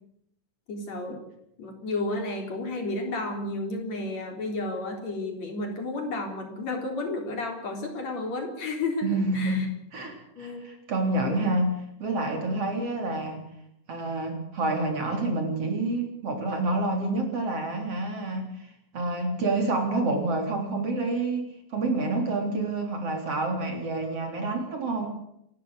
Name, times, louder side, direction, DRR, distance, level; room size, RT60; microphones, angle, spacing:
voice 1, 0.7-1.2 1.6-9.1 9.3-9.7 10.4-10.6 11.2-11.5 12.5-12.6, left 2 dB, 60° left, 3 dB, 5.2 m, -32 dB
voice 2, 9.0-13.4 13.9-25.1, right 2 dB, 50° right, 3 dB, 4.7 m, -28 dB
29.0 x 12.5 x 8.3 m, 0.77 s
omnidirectional pair, 3.5 m